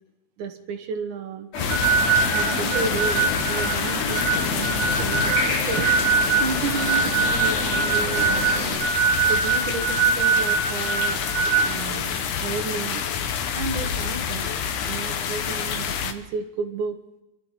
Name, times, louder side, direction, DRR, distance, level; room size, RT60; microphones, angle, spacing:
voice 1, 0.4-1.5 2.3-6.0 6.4-8.9 9.3-13.1 13.5-14.5 14.9-17.0, right 5 dB, 70° right, 5 dB, 1.8 m, -32 dB
sound 1, 1.5-8.8, left 2 dB, 70° left, 4.8 m, -29 dB
sound 2, 1.6-16.1, left 7 dB, 90° left, 1.7 m, -28 dB
sound 3, 1.7-11.7, right 6 dB, 50° right, 2.5 m, -23 dB
26.0 x 13.5 x 4.0 m, 0.94 s
omnidirectional pair, 5.1 m